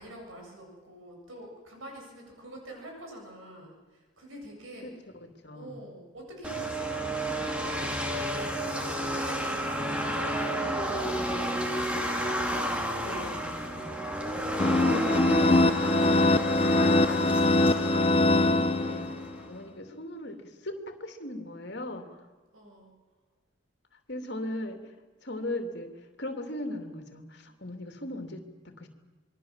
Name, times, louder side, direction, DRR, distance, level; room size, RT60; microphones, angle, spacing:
voice 1, 0.0-4.9 5.5-7.8 8.6-11.8 22.5-22.9, right 1 dB, 85° right, 1 dB, 7.6 m, -46 dB
voice 2, 5.2-5.7 13.0-14.0 14.7-16.3 17.0-19.1 19.5-22.1 24.1-24.8 25.2-25.9 26.2-28.9, left 1 dB, 55° left, 6 dB, 2.9 m, -39 dB
sound 1, 6.4-19.5, equal, 5° right, 2.4 m, -31 dB
sound 2, 14.6-19.3, left 2 dB, 25° left, 0.7 m, -23 dB
26.5 x 22.0 x 7.5 m, 1.4 s
head